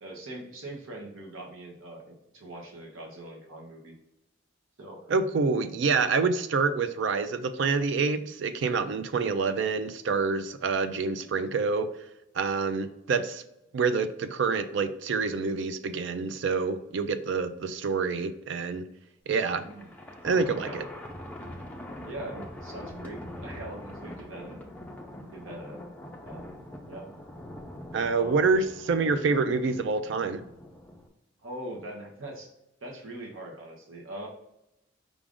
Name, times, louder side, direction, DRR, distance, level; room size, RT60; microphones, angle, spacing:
voice 1, 0.0-4.0 4.8-5.1 19.6-19.9 20.6-20.8 22.1-24.6 25.3-25.9 26.3-26.4 26.9-27.1 28.2-28.5 31.4-32.5 32.8-34.3, right 1 dB, 85° right, 0 dB, 0.9 m, -42 dB
voice 2, 5.1-11.9 12.3-13.4 13.7-18.8 19.3-19.7 20.2-20.8 27.9-30.4, right 4 dB, 65° right, 10 dB, 0.4 m, -27 dB
Thunder, 19.3-31.1, left 1 dB, 10° left, 0.5 m, -43 dB
4.9 x 2.4 x 3.5 m, 0.88 s
head